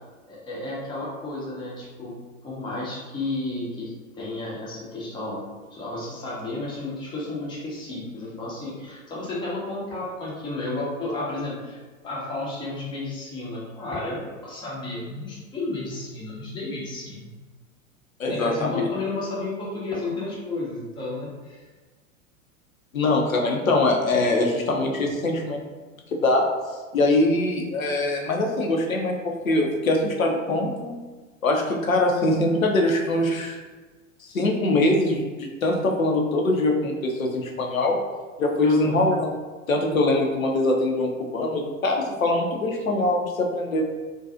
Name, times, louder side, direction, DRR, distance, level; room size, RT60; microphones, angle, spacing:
voice 1, 0.3-5.4 5.7-17.3 18.3-21.6 38.6-39.1, left 2 dB, 10° left, -5 dB, 0.5 m, -32 dB
voice 2, 18.2-18.9 22.9-25.6 26.1-26.5 26.9-30.9 31.4-33.6 34.2-38.0 38.4-39.3 39.7-43.8, left 2 dB, 80° left, 1 dB, 0.5 m, -23 dB
2.5 x 2.2 x 2.4 m, 1.3 s
figure-of-eight pair, 90°, 41 cm